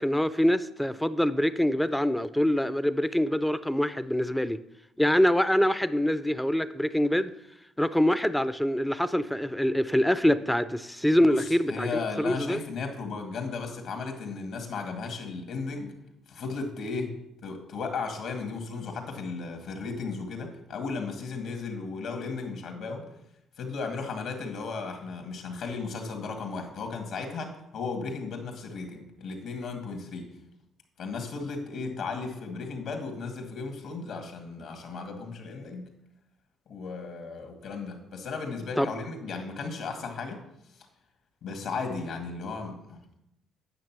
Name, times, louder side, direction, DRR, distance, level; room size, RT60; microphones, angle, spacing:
voice 1, 0.0-4.6 5.0-7.3 7.8-12.6 38.8-38.9, equal, 5° left, 0.4 m, -25 dB
voice 2, 11.3-15.9 16.3-17.2 17.4-23.1 23.6-30.3 31.0-35.9 36.7-40.4 41.4-43.0, left 4 dB, 70° left, 2.2 m, -35 dB
9.4 x 6.7 x 6.1 m
cardioid pair, 95°, 0 cm